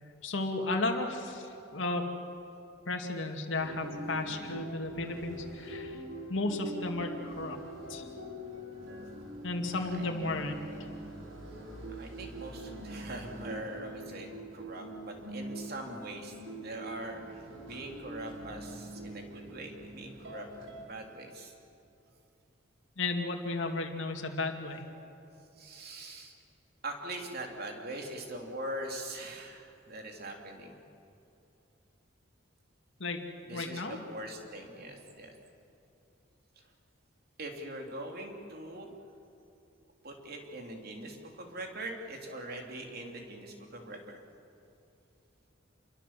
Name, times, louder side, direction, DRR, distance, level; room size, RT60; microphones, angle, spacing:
voice 1, 0.2-2.1 2.9-6.0 6.3-7.6 7.9-8.1 9.4-10.6 23.0-24.8 33.0-33.2 33.5-34.0, left 2 dB, 70° left, 2 dB, 2.4 m, -34 dB
sound 1, 3.6-20.8, right 1 dB, 90° right, 4.9 m, -44 dB
voice 2, 9.7-10.1 11.9-21.5 25.5-26.3 26.8-30.8 33.4-35.3 36.5-36.7 37.4-38.9 40.0-44.2, right 1 dB, 50° right, 2 dB, 3.4 m, -42 dB
29.0 x 23.0 x 7.6 m, 2.8 s
head